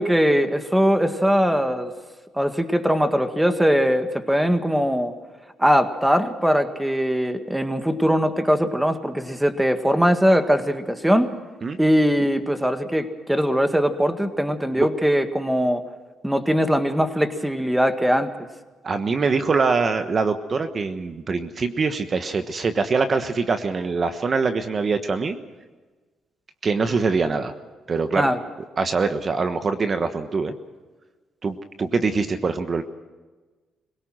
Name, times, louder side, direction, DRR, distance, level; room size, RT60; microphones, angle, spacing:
voice 1, 0.0-1.9 2.4-5.2 5.6-11.3 11.8-15.9 16.2-18.3 28.2-28.4, equal, 5° right, 8 dB, 1.7 m, -21 dB
voice 2, 18.8-25.4 26.6-27.5 27.9-28.3 28.8-30.5 31.4-32.8, right 4 dB, 40° right, 8 dB, 1.2 m, -23 dB
25.0 x 18.0 x 6.2 m, 1.3 s
cardioid pair, 90°, 0 cm